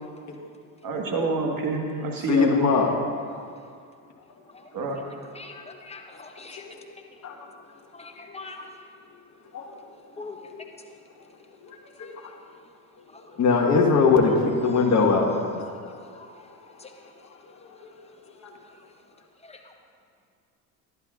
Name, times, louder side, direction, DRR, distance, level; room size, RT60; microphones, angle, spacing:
voice 1, 0.8-2.8 4.7-5.0, right 3 dB, 45° right, 2 dB, 1.6 m, -27 dB
voice 2, 2.3-2.9 7.2-7.3 9.5-9.7 10.5-10.6 12.0-12.1 13.4-15.3 18.4-18.5, left 4 dB, 35° left, 0 dB, 1.4 m, -20 dB
voice 3, 5.0-6.7 7.9-8.6 10.2-10.5 13.1-13.4 14.7-14.9 15.7-16.5 16.8-17.1 19.4-19.7, left 3 dB, 15° left, 3 dB, 1.1 m, -44 dB
11.0 x 11.0 x 2.5 m, 2.3 s
hypercardioid pair, 65°, 46 cm